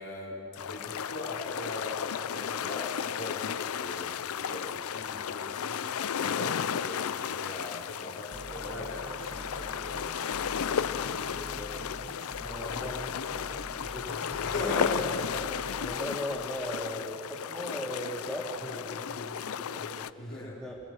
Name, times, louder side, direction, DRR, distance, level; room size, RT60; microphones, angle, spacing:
voice 1, 0.0-12.1 14.4-15.2 20.2-20.6, left 2 dB, 55° left, -3 dB, 3.8 m, -40 dB
sound 1, 0.6-20.1, left 8 dB, 80° left, 0.5 m, -34 dB
sound 2, 8.3-16.0, right 1 dB, 25° right, 1.3 m, -45 dB
voice 2, 12.3-14.5 15.5-20.8, equal, 5° left, -4 dB, 2.3 m, -39 dB
27.5 x 20.0 x 6.1 m, 2.7 s
head